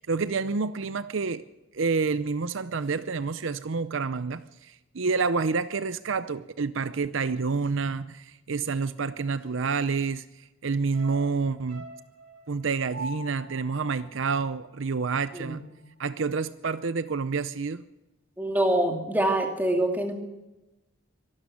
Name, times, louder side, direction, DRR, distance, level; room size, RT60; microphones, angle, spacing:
voice 1, 0.0-1.4 1.7-11.9 12.5-15.6 16.0-17.8, right 4 dB, 65° right, 14 dB, 0.6 m, -28 dB
sound 1, 10.9-15.3 15.6-15.7, right 2 dB, 85° right, 3.6 m, -44 dB
voice 2, 18.4-20.1, right 1 dB, 10° right, 3 dB, 2.4 m, -25 dB
24.0 x 12.5 x 8.5 m, 1.0 s
head